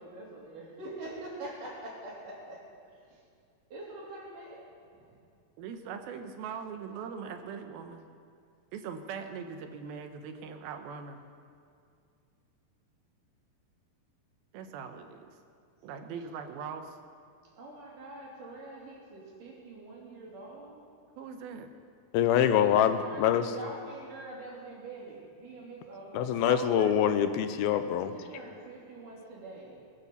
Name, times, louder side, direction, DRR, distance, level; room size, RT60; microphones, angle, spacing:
voice 1, 0.0-3.2 3.7-4.7 5.0-5.1 17.6-20.8 22.4-26.4 28.1-29.8, right 2 dB, 60° right, -4 dB, 4.7 m, -45 dB
voice 2, 5.6-8.1 8.7-11.3 14.5-15.3 15.8-17.0 21.2-21.7 26.5-27.1, right 6 dB, 80° right, 7 dB, 2.8 m, -41 dB
voice 3, 22.1-23.5 26.1-28.1, left 9 dB, 90° left, 10 dB, 2.7 m, -25 dB
20.5 x 9.7 x 7.1 m, 2.4 s
omnidirectional pair, 4.3 m